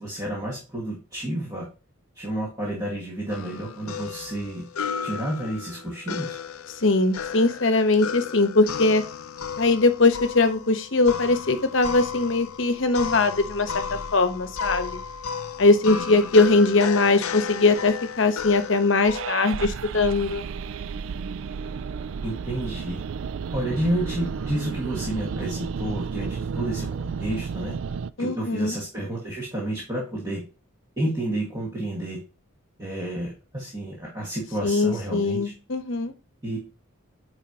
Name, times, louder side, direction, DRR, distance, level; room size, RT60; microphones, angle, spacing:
voice 1, 0.0-1.7 2.2-4.7 5.0-6.4 22.2-23.0 23.5-27.8 28.2-30.4 31.0-32.2 32.8-35.5 36.4-36.6, right 1 dB, 15° right, -5 dB, 1.7 m, -30 dB
sound 1, 3.3-19.3, left 6 dB, 85° left, 0.6 m, -34 dB
voice 2, 6.8-9.0 9.6-15.0 15.6-20.5 28.2-28.7 34.6-36.1, left 3 dB, 60° left, 9 dB, 0.9 m, -21 dB
sound 2, 19.1-28.1, right 6 dB, 65° right, 0.3 m, -32 dB
8.7 x 4.8 x 2.8 m, 0.32 s
head